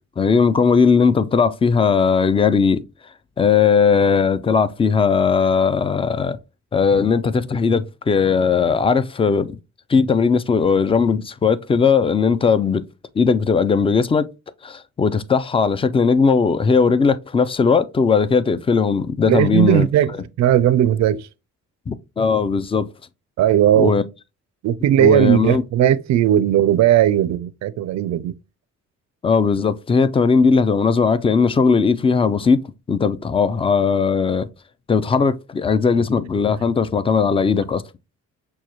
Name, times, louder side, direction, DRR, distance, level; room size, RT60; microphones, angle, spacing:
voice 1, 0.2-2.8 3.4-6.4 6.7-9.6 9.9-12.8 13.2-14.3 14.6-19.9 21.9-22.9 23.8-24.0 25.0-25.6 29.2-32.6 32.9-34.5 34.9-37.8, left 5 dB, 20° left, 0.3 m, -18 dB
voice 2, 19.3-21.3 23.4-23.9 24.6-28.4, right 11 dB, 65° right, 0.4 m, -17 dB
6.1 x 2.3 x 2.9 m
cardioid pair, 90°, 30 cm